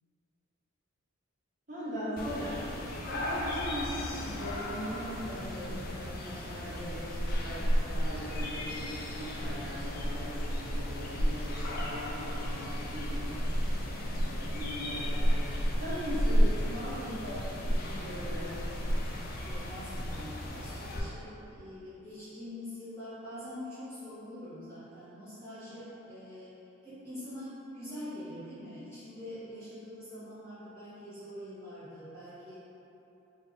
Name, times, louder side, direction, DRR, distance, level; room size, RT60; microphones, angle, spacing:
voice 1, 1.7-2.8 3.1-15.4 15.8-18.6, equal, 35° right, -12 dB, 1.2 m, -40 dB
sound 1, 2.2-21.0, equal, 45° left, 0.4 m, -32 dB
voice 2, 19.4-26.6 26.8-32.6, left 1 dB, 10° left, -14 dB, 1.0 m, -44 dB
3.5 x 2.4 x 3.8 m, 2.9 s
head